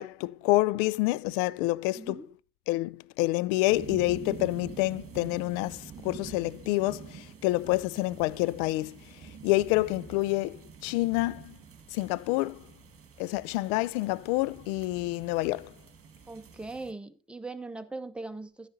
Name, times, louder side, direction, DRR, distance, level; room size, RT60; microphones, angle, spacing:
voice 1, 0.0-2.2 2.7-9.0 9.4-11.5 11.9-12.6 13.2-15.7, left 19 dB, 65° left, 0.5 m, -28 dB
voice 2, 1.9-2.3 16.3-18.7, right 3 dB, ahead, 0.8 m, -40 dB
sound 1, 3.7-16.9, right 6 dB, 30° right, 1.8 m, -47 dB
11.0 x 9.8 x 2.7 m
hypercardioid pair, 70°, 46 cm